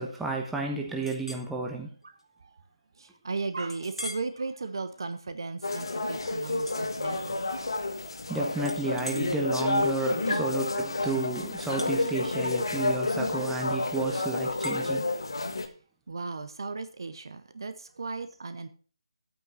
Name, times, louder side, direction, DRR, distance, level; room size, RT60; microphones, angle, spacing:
voice 1, 0.0-1.9 8.3-15.1, right 3 dB, 5° right, 0 dB, 1.0 m, -32 dB
Chink clink, 1.0-1.5 2.0-2.2 2.7-2.8 3.7-4.3 4.9-5.1 6.6-7.6 7.9-8.3 8.6-13.7 14.6-14.8, left 1 dB, 90° left, 2.3 m, -43 dB
voice 2, 3.0-7.4 10.3-10.5 16.1-18.7, right 4 dB, 50° right, 10 dB, 1.2 m, -36 dB
sound 1, 5.6-15.7, left 2 dB, 60° left, 1.6 m, -30 dB
12.0 x 8.8 x 4.3 m, 0.40 s
figure-of-eight pair, 155°, 3 cm